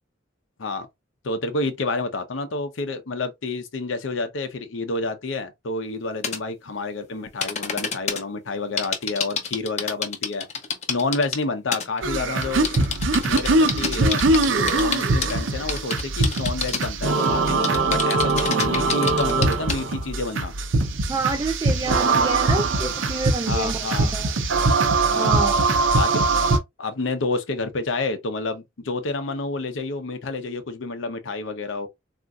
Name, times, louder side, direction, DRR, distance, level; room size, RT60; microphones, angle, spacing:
voice 1, 1.2-10.5 10.9-12.6 13.2-14.5 14.7-20.5 23.4-24.1 25.0-25.4 25.9-31.9, left 3 dB, 90° left, 0.7 m, -29 dB
sound 1, 6.2-6.4 7.4-8.2 8.8-11.4 11.7-12.0 12.4-15.3 15.7-16.9 17.2-19.8, left 6 dB, 35° left, 0.6 m, -27 dB
sound 2, 12.0-26.6, right 3 dB, 90° right, 0.6 m, -22 dB
voice 2, 21.1-24.3 25.2-25.5, right 3 dB, 20° right, 0.3 m, -28 dB
3.7 x 2.5 x 2.3 m
head